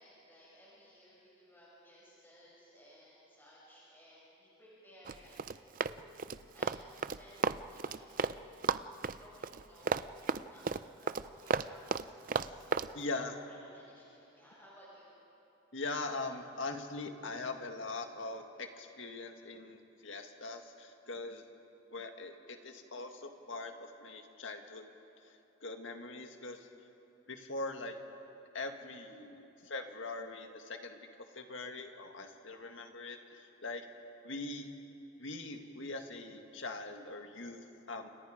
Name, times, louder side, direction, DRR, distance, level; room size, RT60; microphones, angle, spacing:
voice 1, 0.0-5.4 5.7-10.6 11.0-12.6 13.2-14.1 14.3-15.1, equal, 10° left, -7 dB, 6.8 m, -59 dB
Run, 5.1-8.4 8.6-12.9, right 5 dB, 40° right, 0.4 m, -33 dB
voice 2, 12.9-13.3 15.7-21.4 21.9-24.9 25.6-26.7 27.3-28.0 28.5-31.1 31.4-33.9 34.2-34.7 35.2-38.1, left 3 dB, 70° left, 5 dB, 1.9 m, -42 dB
29.5 x 28.5 x 5.1 m, 2.9 s
head